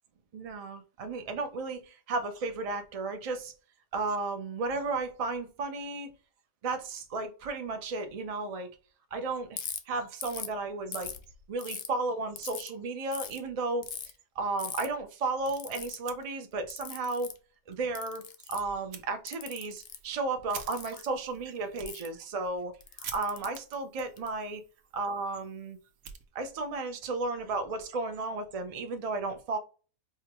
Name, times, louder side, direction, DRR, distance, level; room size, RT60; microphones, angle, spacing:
voice 1, 0.3-3.5 3.9-6.1 6.6-8.7 9.1-9.6 9.9-11.1 11.5-13.9 14.4-17.3 17.7-22.7 23.1-24.6 24.9-25.8 26.3-29.6, right 3 dB, 45° right, 0.4 m, -34 dB
Ratchet pawl, 9.6-9.8 10.2-10.5 10.9-11.9 12.4-12.7 13.1-13.4 13.8-14.1 14.6-14.9 15.5-16.0 16.7-17.4 18.0-18.7 19.3-20.0 20.7-21.1 21.9-22.1 22.8-24.3, left 8 dB, 60° left, 0.7 m, -40 dB
Fire, 16.0-16.8 17.2-17.3 17.7-17.8 18.9-19.0 19.6-26.8, right 7 dB, 75° right, 1.1 m, -48 dB
4.8 x 2.2 x 2.9 m
omnidirectional pair, 1.5 m